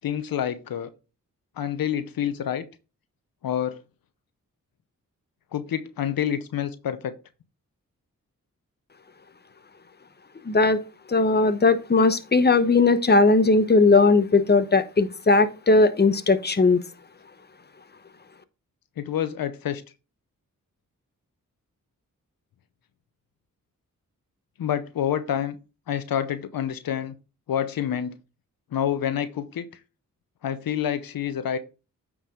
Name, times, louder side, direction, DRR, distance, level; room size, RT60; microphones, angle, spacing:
voice 1, 0.0-0.9 1.6-2.7 3.4-3.8 5.5-7.1 19.0-19.8 24.6-25.6 25.9-27.1 27.5-28.1 28.7-29.7 30.4-31.6, left 9 dB, 80° left, 0.7 m, -27 dB
voice 2, 10.5-10.8 11.1-16.8, left 3 dB, 30° left, 0.9 m, -18 dB
8.9 x 4.8 x 3.7 m
cardioid pair, 50°, 34 cm